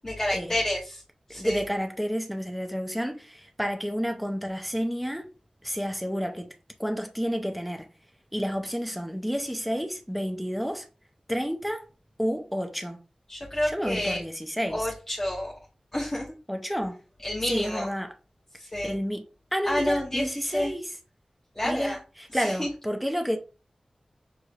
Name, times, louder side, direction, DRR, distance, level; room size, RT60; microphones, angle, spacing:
voice 1, 0.0-1.0 1.3-1.6 13.3-14.2 14.7-15.5 15.9-16.3 17.2-17.9 18.6-18.9 19.6-20.7 21.5-22.0 22.4-22.7, left 1 dB, 20° left, 1.1 m, -29 dB
voice 2, 1.3-5.3 5.6-6.5 6.8-7.9 8.3-10.9 11.3-11.8 12.2-13.0 13.6-14.9 16.5-17.0 17.5-18.1 18.8-19.2 19.5-21.0 21.6-23.4, equal, ahead, 0.7 m, -30 dB
6.4 x 3.0 x 2.5 m
wide cardioid pair, 90°, 2 cm